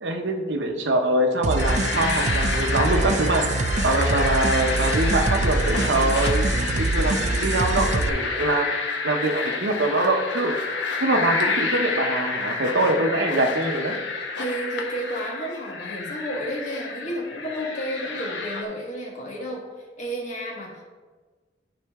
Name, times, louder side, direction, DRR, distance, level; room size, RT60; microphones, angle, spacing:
voice 1, 0.0-6.5 6.8-8.7 9.0-10.6 11.0-14.0, right 1 dB, 80° right, 5 dB, 0.9 m, -24 dB
sound 1, 1.4-8.1, right 3 dB, 40° right, 0.4 m, -24 dB
sound 2, 1.6-18.6, left 4 dB, 85° left, 1.1 m, -29 dB
voice 2, 14.4-20.8, equal, 45° left, -2 dB, 1.7 m, -32 dB
12.0 x 4.5 x 3.6 m, 1.3 s
head